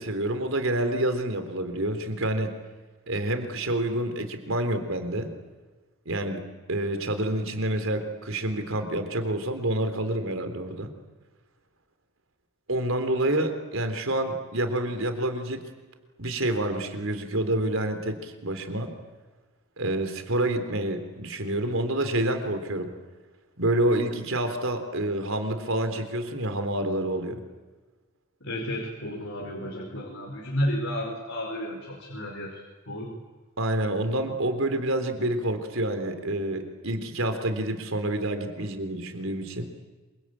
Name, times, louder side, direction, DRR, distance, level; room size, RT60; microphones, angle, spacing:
voice 1, 0.0-2.5 3.1-5.3 6.1-10.9 12.7-15.7 16.2-18.9 19.8-22.9 23.6-27.4 33.6-39.7, right 1 dB, 75° right, 7 dB, 3.7 m, -28 dB
voice 2, 28.4-33.1, equal, 80° left, -1 dB, 5.2 m, -32 dB
27.5 x 25.0 x 8.8 m, 1.3 s
head